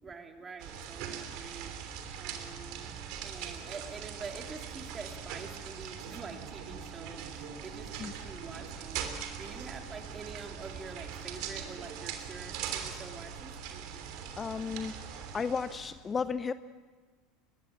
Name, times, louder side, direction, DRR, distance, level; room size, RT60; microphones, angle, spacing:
voice 1, 0.0-1.7 2.2-2.9 3.2-9.0 9.3-13.5, right 4 dB, 25° right, 4 dB, 3.4 m, -46 dB
sound 1, 0.6-15.9, right 8 dB, 55° right, 3.1 m, -41 dB
voice 2, 14.4-16.5, left 5 dB, 25° left, 15 dB, 0.7 m, -34 dB
24.5 x 22.0 x 7.4 m, 1.5 s
figure-of-eight pair, 75°, 0 cm